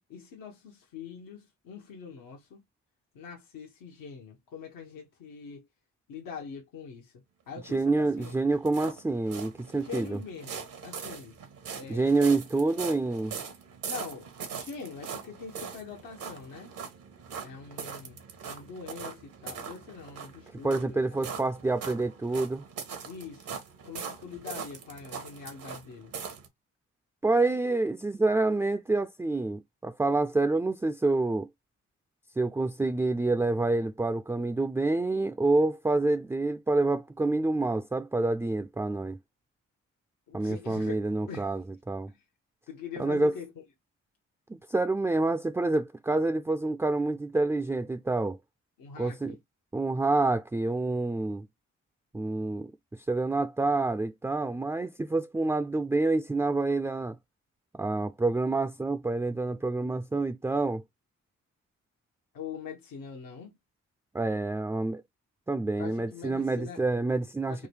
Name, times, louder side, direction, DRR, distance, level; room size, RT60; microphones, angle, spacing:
voice 1, 0.1-2.6 3.1-5.7 6.1-7.1 7.5-8.4 9.8-11.4 11.7-12.2 13.8-16.7 17.4-18.2 18.4-21.2 23.0-23.6 23.8-26.1 40.3-41.5 42.1-42.2 42.7-43.5 48.8-49.4 62.3-63.6 65.8-66.8 67.5-67.7, left 6 dB, 80° left, 0.9 m, -43 dB
sound 1, 7.6-26.5, right 6 dB, 80° right, 1.2 m, -41 dB
voice 2, 7.7-10.2 11.9-13.3 20.6-22.6 27.2-31.5 32.4-39.2 40.3-42.1 43.0-43.3 44.5-48.4 49.0-49.3 49.7-51.5 52.1-57.2 57.7-60.8 64.1-65.0 65.5-67.7, right 2 dB, 10° right, 0.4 m, -27 dB
3.7 x 2.2 x 3.3 m
supercardioid pair, 50°, 33 cm